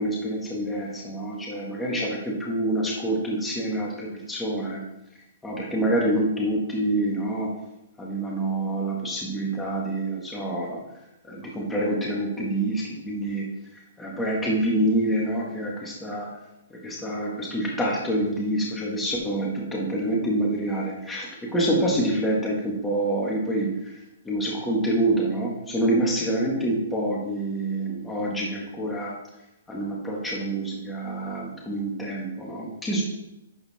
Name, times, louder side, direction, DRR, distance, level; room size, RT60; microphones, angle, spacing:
voice 1, 0.0-4.8 5.4-7.5 8.0-10.8 11.2-13.5 14.0-16.3 16.7-23.9 24.2-29.1 29.7-33.0, right 1 dB, 5° left, -4 dB, 1.7 m, -27 dB
11.5 x 4.3 x 4.2 m, 0.88 s
hypercardioid pair, 155°, 0 cm